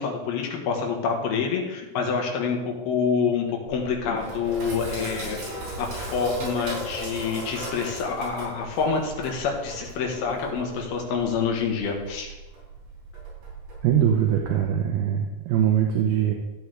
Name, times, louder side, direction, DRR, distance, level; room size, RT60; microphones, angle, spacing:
voice 1, 0.0-12.4, left 5 dB, 70° left, 1 dB, 3.2 m, -27 dB
Sink (filling or washing), 3.7-14.7, right 1 dB, 60° right, 5.7 m, -37 dB
voice 2, 13.8-16.3, right 9 dB, 75° right, 2 dB, 2.6 m, -22 dB
13.5 x 8.4 x 3.4 m, 1.1 s
omnidirectional pair, 4.8 m